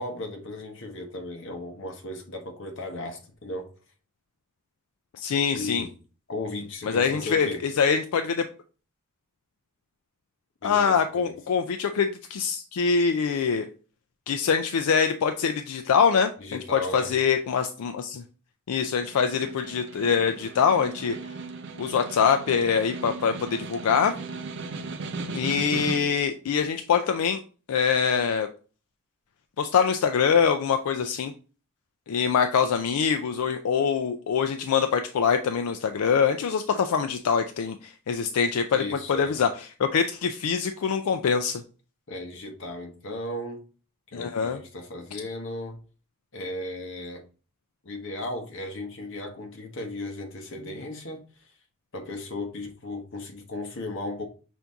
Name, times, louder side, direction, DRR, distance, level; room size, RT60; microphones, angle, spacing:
voice 1, 0.0-3.7 5.5-5.9 6.3-7.6 10.6-11.4 16.4-17.2 38.7-39.5 42.1-43.6 44.1-45.8 46.3-47.3 47.8-51.5 51.9-54.3, left 1 dB, 55° left, 0.9 m, -36 dB
voice 2, 5.1-5.8 6.8-8.4 10.6-13.7 14.3-18.2 18.7-21.2 21.8-24.1 25.3-27.4 27.7-28.5 29.6-31.3 32.1-38.8 39.1-39.5 39.8-41.6 44.1-44.6, left 6 dB, 80° left, 0.4 m, -24 dB
Snare drum, 18.8-26.3, right 3 dB, 50° right, 0.5 m, -37 dB
5.8 x 2.6 x 3.5 m
head